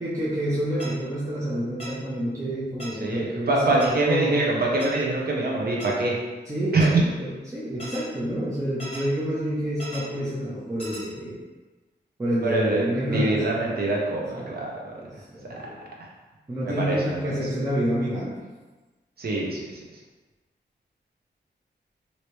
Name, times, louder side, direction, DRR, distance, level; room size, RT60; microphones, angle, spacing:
voice 1, 0.0-4.3 6.5-11.4 12.2-13.4 14.3-14.5 15.0-15.7 16.5-18.4, equal, 15° right, -9 dB, 0.7 m, -28 dB
sound 1, 0.8-0.9 1.8-1.9 2.8-2.9 3.8-3.9 4.8-4.9 5.8-5.9 6.8-6.9 7.8-8.0 8.8-9.0 9.8-10.0 10.8-11.0, equal, 30° left, 1.1 m, -37 dB
voice 2, 3.0-6.1 6.7-6.9 12.4-14.7 16.7-17.2 19.2-19.6, right 2 dB, 55° right, -3 dB, 0.8 m, -24 dB
3.1 x 2.8 x 3.1 m, 1.2 s
wide cardioid pair, 105°, 18 cm